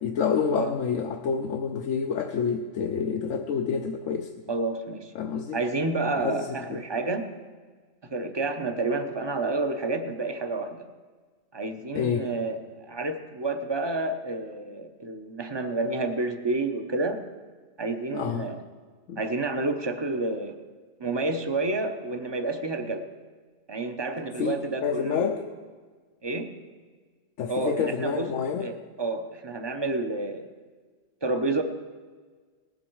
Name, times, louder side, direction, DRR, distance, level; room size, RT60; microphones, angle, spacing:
voice 1, 0.0-4.3 5.1-5.6 6.1-6.8 11.9-12.3 18.1-18.4 19.1-19.2 24.4-25.4 27.4-28.7, left 6 dB, 80° left, 4 dB, 1.1 m, -28 dB
voice 2, 4.5-5.2 5.5-7.3 8.1-10.9 11.5-17.2 17.8-18.6 19.2-20.6 21.0-23.1 23.7-25.5 26.2-26.5 27.5-28.3 28.6-30.5 31.2-31.6, right 2 dB, 25° right, 7 dB, 0.7 m, -29 dB
18.5 x 7.8 x 4.6 m, 1.5 s
omnidirectional pair, 1.3 m